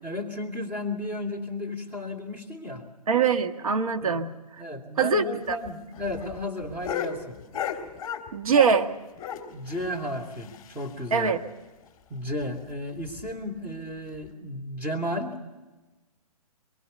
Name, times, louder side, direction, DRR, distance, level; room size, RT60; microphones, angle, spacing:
voice 1, 0.0-2.8 4.0-4.2 4.6-7.4 9.5-11.4 12.1-15.4, left 1 dB, 10° right, -1 dB, 2.9 m, -33 dB
voice 2, 3.1-4.4 5.0-5.6 8.3-8.9 11.1-11.4, right 5 dB, 60° right, 5 dB, 1.7 m, -23 dB
sound 1, 5.4-8.9 9.2-11.1 11.4-11.5 11.8-11.9 12.3-12.4 13.0-13.3 14.1-14.3, left 9 dB, 20° left, 3.4 m, -36 dB
23.0 x 23.0 x 6.9 m, 1.2 s
figure-of-eight pair, 125°, 20 cm